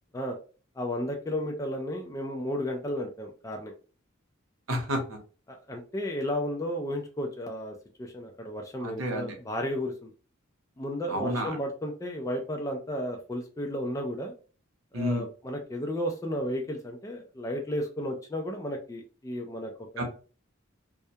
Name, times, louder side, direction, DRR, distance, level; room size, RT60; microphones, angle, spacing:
voice 1, 0.8-3.7 5.5-10.1 10.8-14.3 14.9-20.0, equal, 15° left, 2 dB, 0.3 m, -33 dB
voice 2, 4.7-5.2 8.8-9.4 11.1-11.6 14.9-15.2 20.0-20.1, equal, 85° right, 3 dB, 0.8 m, -30 dB
2.3 x 2.1 x 2.7 m, 0.37 s
head